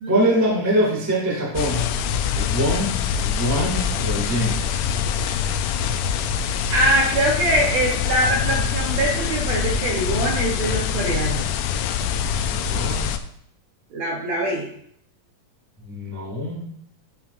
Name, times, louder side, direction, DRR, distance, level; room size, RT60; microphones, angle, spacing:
voice 1, 0.1-1.9 2.3-4.6 12.5-13.0 15.8-16.7, equal, 15° right, -3 dB, 0.7 m, -23 dB
sound 1, 1.6-13.2, left 7 dB, 85° left, 1.8 m, -24 dB
voice 2, 6.7-11.5 13.9-14.7, right 1 dB, 70° right, -2 dB, 1.7 m, -23 dB
8.8 x 7.0 x 2.5 m, 0.69 s
omnidirectional pair, 4.1 m